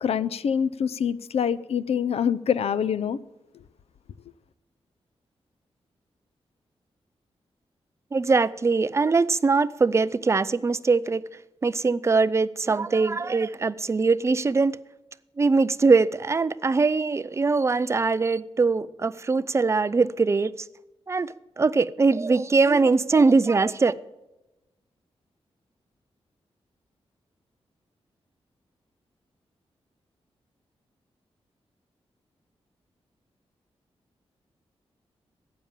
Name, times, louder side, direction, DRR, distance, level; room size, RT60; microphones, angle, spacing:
voice 1, 0.0-3.2, left 7 dB, 75° left, 0.5 m, -25 dB
voice 2, 8.1-11.2 11.6-14.8 15.4-20.7 21.1-23.9, right 4 dB, 25° right, 0.5 m, -22 dB
12.5 x 8.7 x 7.2 m
wide cardioid pair, 145°, 11 cm